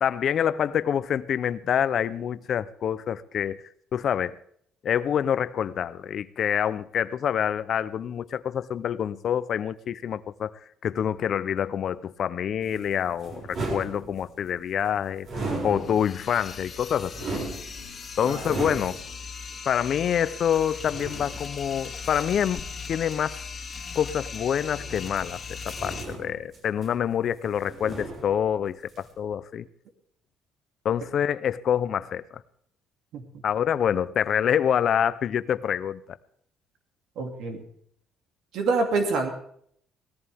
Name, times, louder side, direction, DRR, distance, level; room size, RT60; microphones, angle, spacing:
voice 1, 0.0-3.6 3.9-4.4 4.8-10.5 10.8-15.3 15.6-17.2 18.2-19.0 19.7-23.4 23.9-29.7 30.8-32.4 33.4-36.0, left 9 dB, 50° left, 15 dB, 0.6 m, -26 dB
sound 1, 12.6-14.5 15.2-16.3 16.7-19.2 19.9-20.0 20.8-22.5 23.8-25.2 25.6-27.2 27.4-28.6 28.9-29.1, right 2 dB, 50° right, 6.1 m, -37 dB
sound 2, 15.7-26.1, left 5 dB, 35° left, 2.0 m, -39 dB
voice 2, 37.2-37.6 38.5-39.3, right 3 dB, 70° right, 4 dB, 2.6 m, -26 dB
19.0 x 14.5 x 3.5 m, 0.66 s
cardioid pair, 135°, 0 cm